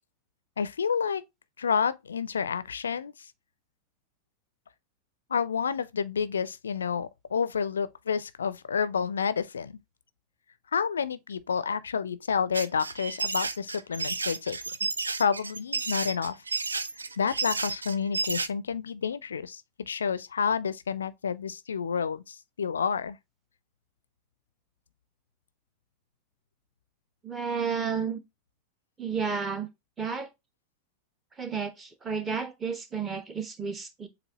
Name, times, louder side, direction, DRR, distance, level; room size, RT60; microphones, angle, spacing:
voice 1, 0.6-1.2 1.6-3.3 5.3-9.8 10.7-14.6 15.2-16.4 17.2-23.2, left 6 dB, 70° left, 0.4 m, -29 dB
sound 1, 12.5-18.5, right 4 dB, 75° right, 0.4 m, -31 dB
voice 2, 27.2-28.2 29.0-29.7 30.0-30.3 31.4-34.1, right 5 dB, 20° right, 1.0 m, -31 dB
7.2 x 2.6 x 2.8 m
figure-of-eight pair, 90°, 0 cm